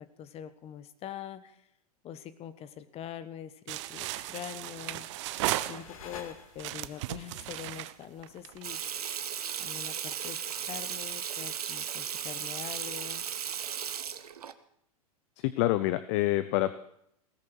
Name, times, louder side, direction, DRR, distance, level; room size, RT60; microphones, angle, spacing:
voice 1, 0.0-1.7 2.0-5.1 5.6-8.8 9.6-13.3, left 10 dB, 30° left, 13 dB, 1.3 m, -44 dB
sound 1, 3.7-6.2 6.6-8.8, right 16 dB, 50° right, 0.8 m, -35 dB
sound 2, 4.6-7.0, left 7 dB, 65° left, 2.1 m, -49 dB
Water tap faucet / Sink (filling or washing), 8.6-14.5, right 8 dB, 75° right, 1.0 m, -36 dB
voice 2, 15.4-16.7, left 16 dB, 45° left, 13 dB, 0.8 m, -27 dB
17.5 x 14.0 x 4.7 m, 0.73 s
hypercardioid pair, 100°, 19 cm